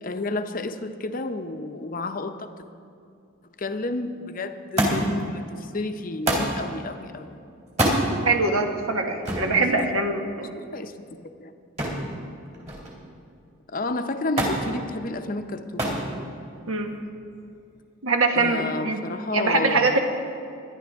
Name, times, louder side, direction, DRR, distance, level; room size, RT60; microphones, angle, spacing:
voice 1, 0.0-2.6 3.6-7.4 9.5-9.9 10.4-11.5 13.7-16.0 18.3-20.0, left 2 dB, 40° left, 8 dB, 0.6 m, -31 dB
Thump thud, 4.8-5.2 6.3-6.6 7.7-8.0 9.3-9.5 11.8-12.1 12.5-13.0 14.4-14.6 15.8-16.1 17.0-17.5 18.5-18.6, right 1 dB, 30° right, 2.7 m, -24 dB
voice 2, 8.2-10.1 10.4-10.5 16.7-16.9 18.0-20.0, right 3 dB, 75° right, 4 dB, 1.3 m, -23 dB
22.5 x 10.5 x 3.5 m, 2.6 s
head